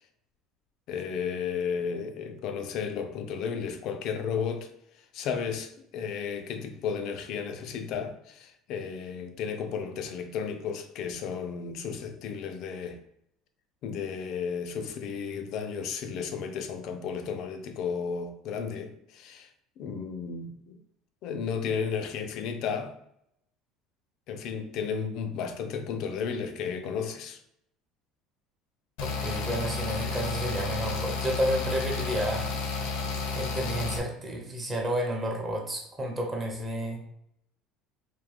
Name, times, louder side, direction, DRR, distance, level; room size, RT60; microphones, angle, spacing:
voice 1, 0.9-4.7 5.1-13.0 13.8-19.5 19.8-20.8 21.2-22.9 24.3-27.4, left 6 dB, 45° left, 0.4 m, -33 dB
sound 1, 29.0-34.0, left 4 dB, 75° left, 0.8 m, -32 dB
voice 2, 29.0-32.5 33.4-37.0, right 1 dB, 15° right, 0.6 m, -31 dB
3.6 x 2.7 x 3.4 m
cardioid pair, 180°, 0 cm